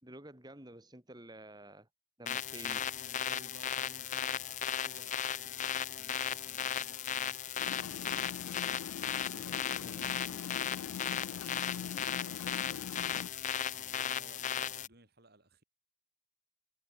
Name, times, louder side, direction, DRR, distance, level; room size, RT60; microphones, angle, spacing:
voice 1, 0.0-1.9 2.2-2.9 9.8-10.1, right 1 dB, 20° right, 2.7 m, -50 dB
sound 1, 2.3-14.9, left 9 dB, 35° left, 0.6 m, -36 dB
voice 2, 2.8-8.5 9.3-12.9 13.7-15.6, right 1 dB, 50° right, 5.0 m, -58 dB
sound 2, 7.6-13.3, left 8 dB, 80° left, 0.3 m, -43 dB
head